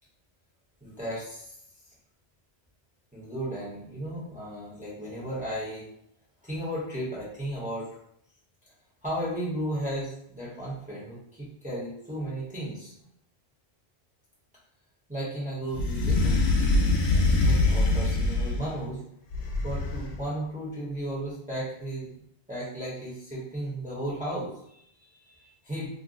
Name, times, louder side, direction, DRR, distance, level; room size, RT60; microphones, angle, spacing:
voice 1, 0.8-1.6 3.1-5.9 6.4-7.9 9.0-12.9 15.1-19.0 19.6-22.1 22.5-25.9, right 1 dB, 10° right, -7 dB, 0.8 m, -35 dB
sound 1, 15.7-18.8 19.3-20.2, left 2 dB, 85° left, 0.8 m, -24 dB
2.5 x 2.1 x 3.8 m, 0.71 s
omnidirectional pair, 1.1 m